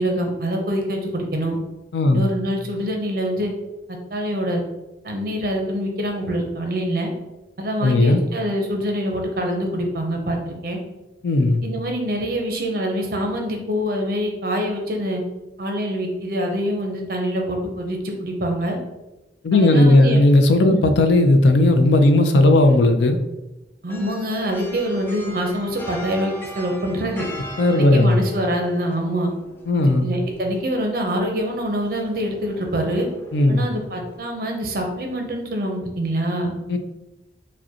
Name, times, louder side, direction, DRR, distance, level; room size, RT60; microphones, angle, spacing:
voice 1, 0.0-1.6 2.1-3.5 3.9-4.6 5.0-7.1 7.6-10.8 11.6-15.2 15.6-18.8 19.5-20.2 20.7-20.9 23.8-27.3 27.7-29.3 29.7-33.1 33.5-36.5, equal, 55° right, 2 dB, 0.7 m, -25 dB
voice 2, 1.9-2.3 7.8-8.2 11.2-11.6 19.4-23.2 27.6-28.2 29.7-30.1 33.3-33.7 36.7-36.8, left 2 dB, 85° left, 7 dB, 0.4 m, -15 dB
sound 1, 23.9-34.2, equal, 15° left, 0.4 m, -40 dB
4.9 x 2.2 x 2.8 m, 1.0 s
head